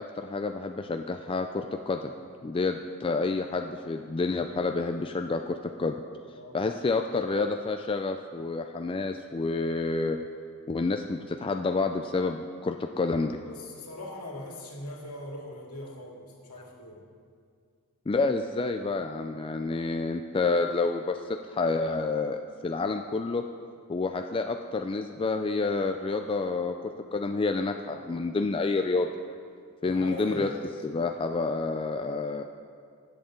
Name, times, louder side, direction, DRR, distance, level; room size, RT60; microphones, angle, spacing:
voice 1, 0.0-2.1 2.4-6.0 6.5-10.2 10.7-13.4 18.1-21.2 21.5-23.4 23.9-29.1 29.8-30.5 30.8-32.4, left 3 dB, 25° left, 5 dB, 0.3 m, -29 dB
voice 2, 6.3-6.7 13.4-17.0 29.8-30.5, left 1 dB, 75° left, -1 dB, 2.3 m, -41 dB
19.5 x 7.9 x 3.8 m, 2.2 s
head